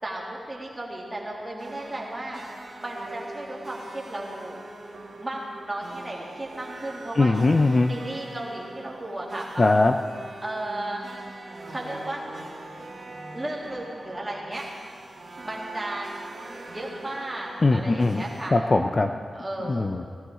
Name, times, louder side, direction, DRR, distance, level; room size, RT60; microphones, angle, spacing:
voice 1, 0.0-2.4 2.8-4.6 5.2-5.4 5.7-7.4 7.9-9.6 10.4-11.0 11.7-12.2 13.3-14.6 15.4-16.1 16.7-18.6 19.3-20.1, right 1 dB, 15° right, -4 dB, 2.3 m, -34 dB
sound 1, 1.6-18.5, right 2 dB, 50° right, 2.8 m, -42 dB
voice 2, 7.2-7.9 9.6-10.0 17.6-18.2 18.5-19.1 19.7-20.1, left 2 dB, 30° left, 6 dB, 0.4 m, -20 dB
17.5 x 15.0 x 3.7 m, 2.1 s
wide cardioid pair, 170°, 0 cm